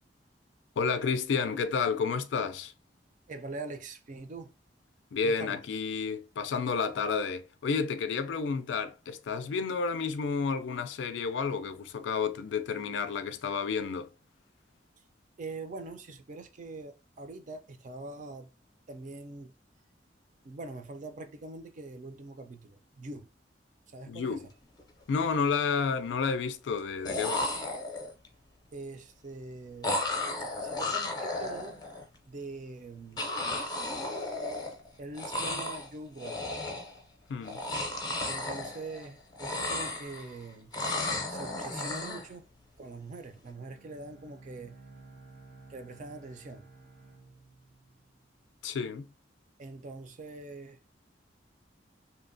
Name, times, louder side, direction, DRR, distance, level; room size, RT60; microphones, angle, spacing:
voice 1, 0.8-2.7 5.1-14.1 24.1-24.5 25.1-27.5 37.3-37.6 48.6-49.1, left 5 dB, 85° left, 0.4 m, -31 dB
voice 2, 3.3-4.6 5.2-5.6 15.4-18.5 18.9-19.5 20.4-23.3 23.9-24.4 28.7-30.0 30.6-31.8 32.3-33.3 35.0-36.6 38.2-40.7 41.3-42.5 42.8-44.8 45.7-46.7 49.6-50.8, right 3 dB, 45° right, 0.4 m, -43 dB
sound 1, 24.6-24.8 25.2-25.8 26.8-26.9 27.1-28.3 29.8-32.0 33.2-34.9 35.1-35.9 36.2-37.0 37.4-39.1 39.3-40.4 40.7-42.3, left 2 dB, 25° left, 0.5 m, -34 dB
Bowed string instrument, 43.5-48.5, right 3 dB, 90° right, 0.9 m, -53 dB
2.7 x 2.1 x 2.5 m
head